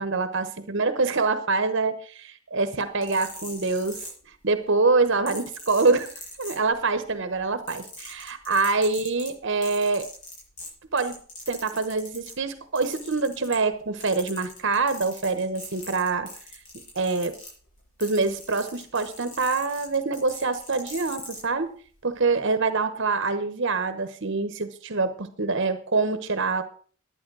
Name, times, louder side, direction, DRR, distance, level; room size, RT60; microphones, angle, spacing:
voice 1, 0.0-4.1 4.4-6.1 6.4-10.1 10.9-11.2 11.5-16.3 16.9-17.4 18.0-21.8 22.0-26.6, right 3 dB, 55° right, 11 dB, 1.0 m, -25 dB
sound 1, 2.8-4.6 5.3-7.0 7.3-12.4 12.8-13.8 14.0-21.4 22.2-22.3, left 2 dB, 55° left, 7.4 m, -41 dB
11.5 x 9.4 x 6.1 m, 0.43 s
head